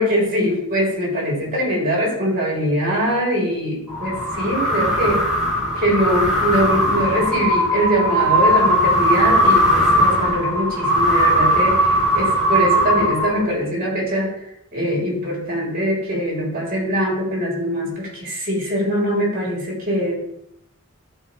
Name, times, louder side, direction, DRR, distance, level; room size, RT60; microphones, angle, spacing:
voice 1, 0.0-5.2 5.8-14.3 14.7-20.1, equal, 45° right, -3 dB, 3.3 m, -22 dB
sound 1, 3.9-13.6, equal, 5° right, 2.4 m, -18 dB
11.5 x 4.6 x 3.3 m, 0.75 s
head